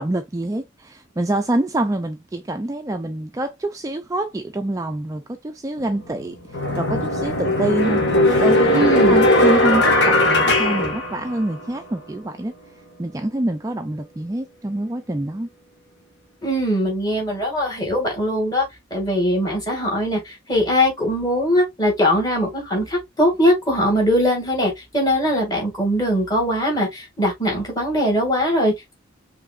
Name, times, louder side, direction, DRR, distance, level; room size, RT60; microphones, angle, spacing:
voice 1, 0.0-6.4 6.8-12.5 13.0-15.5, right 1 dB, 15° right, 0.3 m, -26 dB
sound 1, 5.8-5.9 6.5-11.7, left 1 dB, 60° left, 1.6 m, -18 dB
voice 2, 8.7-9.2 16.4-28.9, equal, 20° left, 2.0 m, -21 dB
4.8 x 3.2 x 2.4 m
head